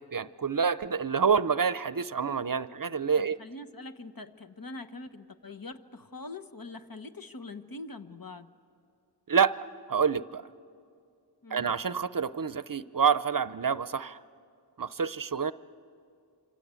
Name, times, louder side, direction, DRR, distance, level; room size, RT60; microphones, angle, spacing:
voice 1, 0.0-3.4 9.3-9.5 9.9-10.5 11.5-14.2 14.8-15.5, right 6 dB, 50° right, 15 dB, 0.6 m, -27 dB
voice 2, 3.2-8.5 11.4-11.7, left 2 dB, 55° left, 9 dB, 1.1 m, -43 dB
26.5 x 25.5 x 8.3 m, 2.4 s
wide cardioid pair, 55°, 41 cm